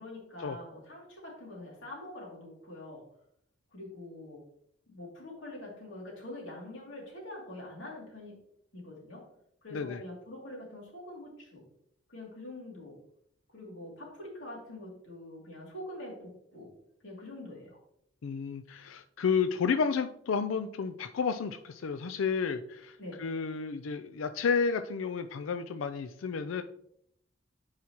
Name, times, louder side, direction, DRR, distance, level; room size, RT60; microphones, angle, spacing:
voice 1, 0.0-3.1 3.7-4.4 4.9-8.4 8.7-9.3 9.6-11.6 12.1-13.0 13.5-16.7 17.0-17.8 23.0-23.2, left 1 dB, 65° left, -2 dB, 2.6 m, -45 dB
voice 2, 9.7-10.0 18.2-26.6, left 5 dB, 85° left, 10 dB, 0.4 m, -31 dB
9.4 x 4.9 x 2.9 m, 0.72 s
head